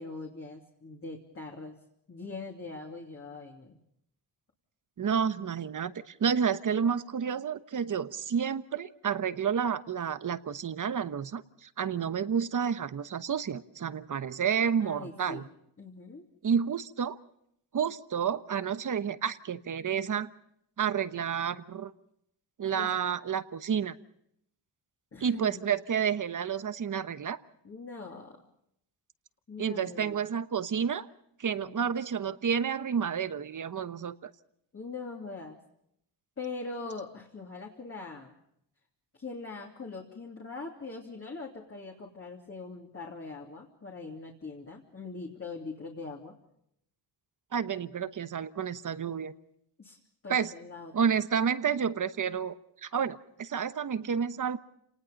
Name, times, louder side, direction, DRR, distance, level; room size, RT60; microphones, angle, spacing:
voice 1, 0.0-1.8 2.1-3.8 14.8-15.5 15.8-16.2 22.8-22.9 25.1-25.7 27.6-28.4 29.5-30.2 31.6-31.9 34.7-35.6 36.4-38.3 39.1-46.3 49.8-50.0 50.2-50.9, left 3 dB, 30° left, -1 dB, 2.9 m, -42 dB
voice 2, 5.0-15.5 16.4-17.2 17.7-20.3 20.8-21.9 22.6-24.0 25.2-27.4 29.6-31.1 31.4-34.3 47.5-49.3 50.3-50.5 50.9-54.6, right 7 dB, 45° right, 13 dB, 1.1 m, -30 dB
29.5 x 19.5 x 5.3 m, 0.75 s
wide cardioid pair, 140°, 45 cm